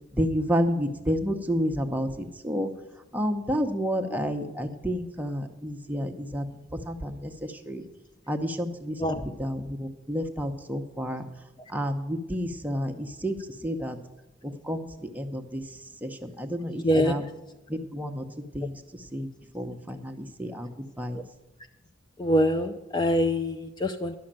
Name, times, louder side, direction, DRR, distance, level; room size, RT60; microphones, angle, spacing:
voice 1, 0.1-2.7 3.1-6.4 6.7-7.8 8.3-9.0 9.4-11.2 11.7-13.4 13.6-14.0 14.4-14.9 15.2-15.6 16.0-17.2 17.7-18.2 18.5-18.8 19.1-19.3 19.5-20.7 21.0-21.2, equal, 10° right, 4 dB, 0.8 m, -30 dB
voice 2, 16.7-17.2 21.1-21.2 22.2-24.1, equal, 25° left, 7 dB, 0.5 m, -25 dB
11.5 x 6.4 x 8.8 m, 0.99 s
head